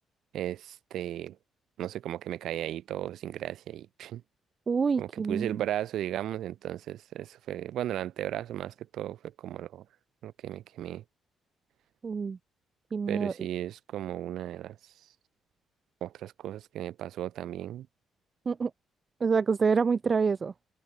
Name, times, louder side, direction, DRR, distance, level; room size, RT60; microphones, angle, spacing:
voice 1, 0.3-1.4 1.8-4.2 5.0-9.8 10.2-11.0 13.1-14.9 16.0-17.9, right 12 dB, 75° right, 1.2 m, -35 dB
voice 2, 4.7-5.6 12.0-12.4 12.9-13.3 18.5-18.7 19.2-20.5, right 5 dB, 40° right, 0.5 m, -27 dB
cardioid pair, 90°, 0 cm